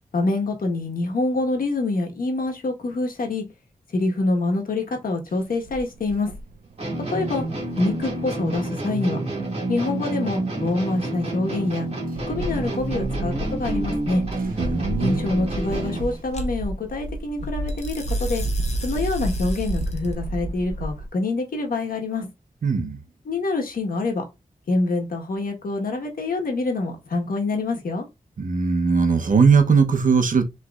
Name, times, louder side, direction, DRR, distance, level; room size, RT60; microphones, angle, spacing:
voice 1, 0.1-3.4 3.9-6.3 7.1-7.4 7.8-9.2 9.7-11.9 12.3-14.2 15.0-18.4 18.8-22.3 23.2-24.2 24.7-28.0, left 2 dB, 80° left, 1.4 m, -26 dB
sound 1, 5.3-11.3 11.6-21.1, right 1 dB, 90° right, 0.7 m, -31 dB
sound 2, 6.8-16.2, right 2 dB, 45° right, 1.9 m, -29 dB
sound 3, 12.4-12.8 16.3-16.5 17.7-20.1, left 3 dB, 50° left, 1.2 m, -40 dB
voice 2, 14.6-15.2 22.6-23.0 28.4-30.4, right 5 dB, 65° right, 0.9 m, -19 dB
6.1 x 3.3 x 2.4 m
cardioid pair, 70°, 15 cm